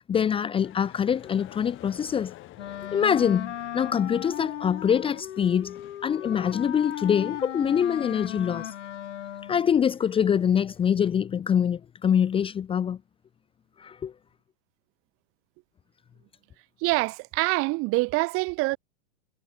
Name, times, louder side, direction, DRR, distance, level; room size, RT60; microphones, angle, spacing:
voice 1, 0.1-2.3 2.9-8.7 9.5-13.0 13.8-14.1, left 8 dB, 15° left, 0.8 m, -24 dB
sound 1, 0.6-11.0, left 17 dB, 35° left, 2.9 m, -52 dB
Wind instrument woodwind instrument, 2.6-9.7, left 11 dB, 85° left, 4.1 m, -36 dB
voice 2, 16.8-18.8, right 25 dB, 40° right, 1.3 m, -25 dB
hypercardioid pair, 135°, 35 cm